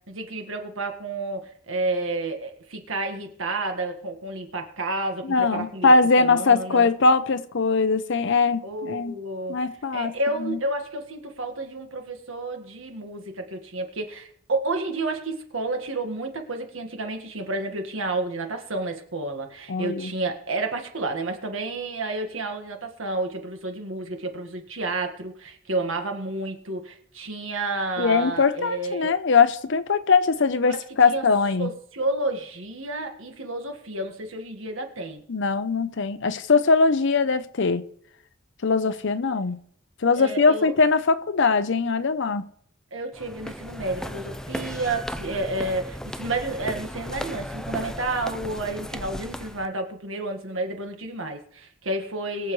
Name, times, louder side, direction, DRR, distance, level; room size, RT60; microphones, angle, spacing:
voice 1, 0.1-6.9 8.6-9.6 9.9-29.1 30.6-30.8 31.1-31.3 31.6-35.2 40.1-40.7 42.9-52.5, right 2 dB, 75° right, 1.8 m, -30 dB
voice 2, 5.2-9.1 9.5-10.1 10.4-10.6 19.7-20.1 28.0-31.7 35.3-37.8 38.6-39.6 40.0-42.4, left 4 dB, 65° left, 0.7 m, -21 dB
sound 1, 43.1-49.7, equal, 5° left, 0.4 m, -35 dB
22.5 x 7.4 x 3.2 m
head